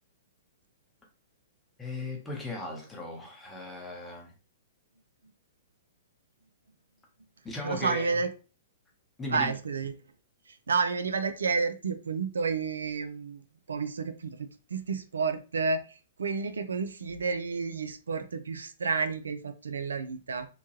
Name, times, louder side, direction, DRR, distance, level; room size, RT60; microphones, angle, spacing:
voice 1, 1.8-4.3 7.4-8.1 9.2-9.6, left 2 dB, 10° left, 1.0 m, -37 dB
voice 2, 7.6-8.3 9.3-9.9 10.7-13.4 13.7-15.8 16.2-20.5, right 4 dB, 80° right, 0.4 m, -30 dB
2.9 x 2.2 x 3.0 m
hypercardioid pair, 115°, 0 cm